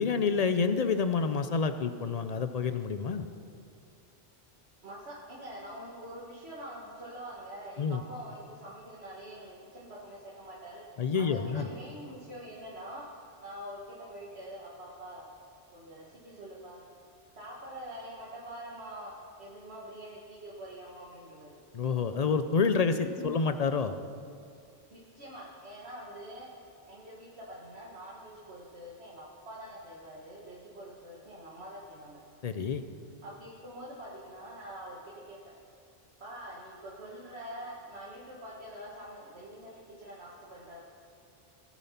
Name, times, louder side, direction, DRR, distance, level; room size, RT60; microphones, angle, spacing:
voice 1, 0.0-3.3 7.8-8.0 11.0-11.7 21.7-24.0 32.4-32.8, left 5 dB, 50° left, 9 dB, 0.5 m, -28 dB
voice 2, 4.8-13.0 13.4-15.3 15.7-16.8 17.4-19.1 19.4-21.5 23.2-23.3 24.9-26.5 26.9-32.2 33.2-35.4 36.2-40.8, equal, 60° right, -6 dB, 1.9 m, -45 dB
18.5 x 7.0 x 5.9 m, 2.4 s
omnidirectional pair, 1.2 m